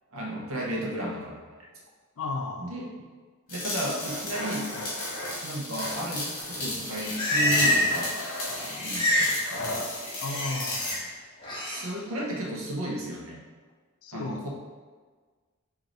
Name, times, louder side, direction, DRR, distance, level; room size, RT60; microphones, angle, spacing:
voice 1, 0.1-1.4 2.6-2.9 3.5-4.7 5.4-8.2 8.6-9.7 11.6-13.4 14.1-14.5, right 1 dB, 80° right, -2 dB, 0.9 m, -34 dB
voice 2, 2.2-2.7 10.2-11.0 14.0-14.4, left 3 dB, 85° left, 4 dB, 0.5 m, -34 dB
sound 1, 3.5-11.0, left 1 dB, 40° left, 1.4 m, -35 dB
sound 2, 4.0-5.3 5.7-6.6 6.9-9.9, left 1 dB, 60° left, 0.8 m, -38 dB
Livestock farm animals working animals, 6.6-8.1 8.3-9.4 9.7-11.0 11.4-11.8, left 1 dB, 20° left, 0.9 m, -27 dB
5.0 x 2.7 x 3.0 m, 1.4 s
head